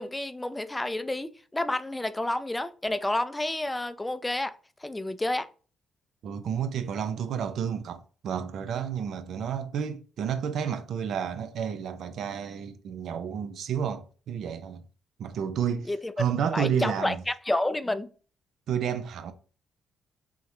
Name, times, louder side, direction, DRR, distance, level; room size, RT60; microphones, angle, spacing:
voice 1, 0.0-4.5 4.8-5.5 15.9-16.1 16.5-18.1, left 1 dB, 10° left, 0.3 m, -30 dB
voice 2, 6.2-14.8 15.2-15.9 16.2-17.2 18.7-19.3, right 8 dB, 70° right, 0.4 m, -31 dB
3.6 x 2.1 x 2.9 m
cardioid pair, 90°, 0 cm